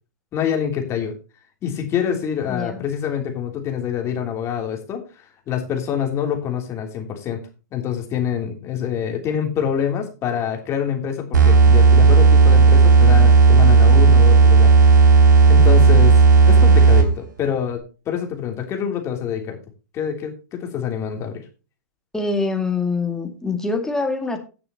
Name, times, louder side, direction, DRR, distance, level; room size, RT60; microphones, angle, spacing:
voice 1, 0.3-1.1 1.6-7.4 7.7-15.2 15.5-16.2 16.4-19.6 19.9-21.4, left 8 dB, 30° left, 3 dB, 3.1 m, -26 dB
voice 2, 2.5-2.8 22.1-24.4, left 3 dB, 5° left, 4 dB, 2.1 m, -24 dB
sound 1, 11.3-17.2, right 4 dB, 75° right, 3.5 m, -11 dB
17.0 x 6.9 x 2.9 m, 0.32 s
hypercardioid pair, 115°, 10 cm